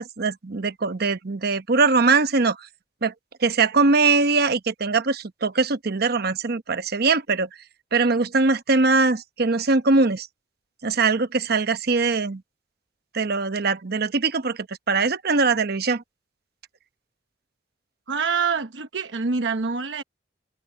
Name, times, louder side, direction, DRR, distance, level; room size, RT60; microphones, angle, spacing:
voice 1, 0.0-2.6 3.0-3.1 3.4-7.5 7.9-10.3 10.8-12.4 13.1-16.0, right 4 dB, 60° right, 0.9 m, -21 dB
voice 2, 18.1-20.0, right 5 dB, 90° right, 1.0 m, -26 dB
head